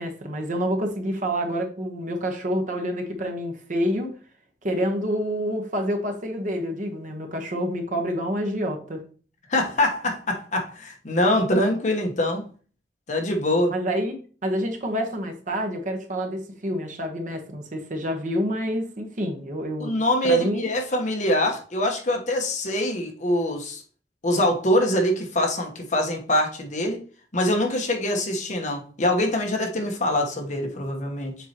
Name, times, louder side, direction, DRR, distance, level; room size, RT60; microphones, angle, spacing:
voice 1, 0.0-4.1 4.6-9.0 13.7-14.1 14.4-19.9 20.2-20.7, equal, 45° right, 1.1 m, -28 dB
voice 2, 9.5-12.4 13.1-13.7 19.8-23.8 24.2-27.0 27.3-31.4, left 1 dB, 45° left, 1.1 m, -24 dB
7.2 x 4.5 x 2.9 m
head